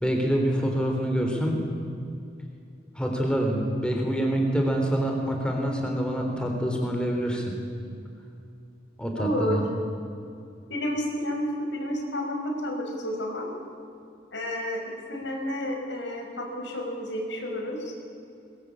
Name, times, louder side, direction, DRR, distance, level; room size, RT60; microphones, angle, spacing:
voice 1, 0.0-1.6 3.0-7.5 9.0-9.6, equal, 5° left, 1 dB, 3.6 m, -26 dB
voice 2, 9.2-9.6 10.7-13.5 14.3-14.8 15.1-17.9, equal, 90° left, 2 dB, 5.8 m, -30 dB
22.0 x 21.5 x 8.7 m, 2.5 s
head